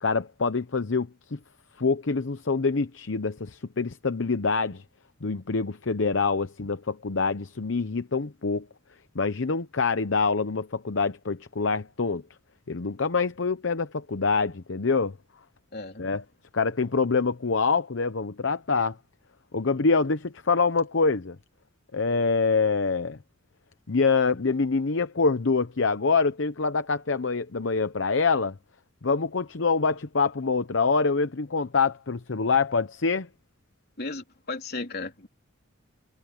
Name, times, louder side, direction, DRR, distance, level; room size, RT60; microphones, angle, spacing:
voice 1, 0.0-1.4 1.8-4.8 5.2-8.7 9.1-12.2 12.7-15.2 16.0-16.2 16.5-19.0 19.5-21.4 21.9-23.2 23.9-28.5 29.0-33.3, left 4 dB, 65° left, 0.8 m, -25 dB
voice 2, 15.7-16.0 34.0-35.3, left 3 dB, 50° left, 3.6 m, -35 dB
head